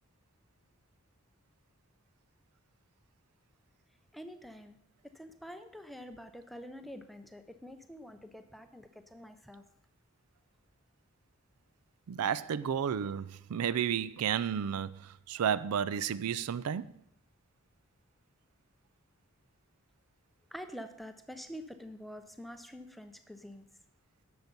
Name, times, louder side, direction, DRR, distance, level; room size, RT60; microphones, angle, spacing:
voice 1, 4.1-4.8 5.0-9.6 20.5-23.6, equal, ahead, 0.5 m, -47 dB
voice 2, 12.1-15.0 15.3-16.9, right 8 dB, 85° right, 0.4 m, -32 dB
10.5 x 6.9 x 5.2 m
head